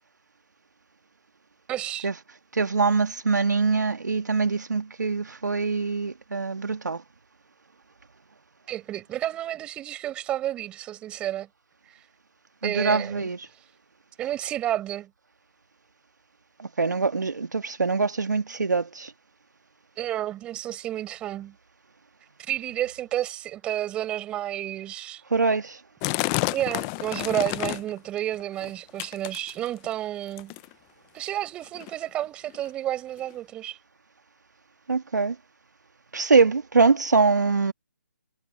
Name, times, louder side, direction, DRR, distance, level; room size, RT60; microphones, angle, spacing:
voice 1, 1.7-2.1 8.7-11.5 12.6-13.3 14.2-15.1 20.0-21.5 22.5-25.2 26.5-30.5 31.1-33.8, right 13 dB, 10° right, 6.7 m, -31 dB
voice 2, 2.5-7.0 12.6-13.4 16.6-19.1 25.3-25.8 34.9-35.4 36.1-37.7, right 4 dB, 80° right, 1.8 m, -23 dB
sound 1, 26.0-28.0 28.3-28.7 29.0-29.9 30.4-30.7 31.5-31.6 31.7-31.9 32.5-32.6 33.3-33.4, left 25 dB, 10° left, 0.4 m, -29 dB
hypercardioid pair, 165°, 9 cm